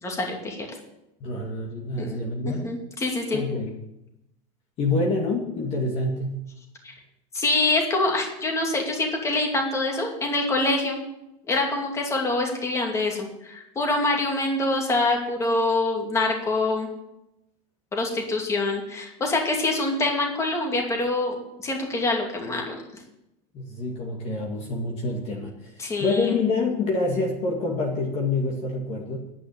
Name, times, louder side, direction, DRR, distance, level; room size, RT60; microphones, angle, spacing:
voice 1, 0.0-0.7 2.0-2.2 2.4-3.4 6.8-6.9 7.3-11.0 11.5-16.9 17.9-22.8 25.8-26.3, left 2 dB, 15° left, 1 dB, 2.5 m, -25 dB
voice 2, 1.2-2.7 3.3-3.7 4.8-6.4 23.5-29.2, left 3 dB, 35° left, 0 dB, 2.0 m, -27 dB
10.0 x 9.2 x 8.6 m, 0.88 s
supercardioid pair, 155°, 18 cm